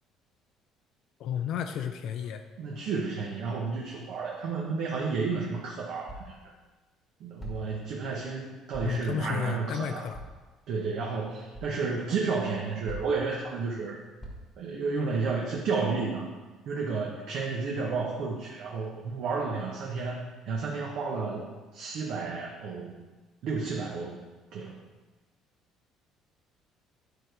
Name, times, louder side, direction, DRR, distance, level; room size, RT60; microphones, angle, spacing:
voice 1, 1.2-2.4 8.8-10.2, left 8 dB, 55° left, 7 dB, 0.5 m, -32 dB
voice 2, 2.6-6.4 7.2-10.1 10.7-14.0 14.6-16.3 16.7-21.5 21.7-23.0 23.4-24.2 24.5-24.8, right 4 dB, 55° right, -2 dB, 1.1 m, -31 dB
sound 1, 6.1-6.4 7.4-7.8 8.7-9.1 10.1-10.5 11.5-11.7 12.9-13.3 14.2-14.6, right 1 dB, ahead, 1.6 m, -42 dB
11.5 x 5.0 x 4.6 m, 1.3 s
cardioid pair, 165°, 0 cm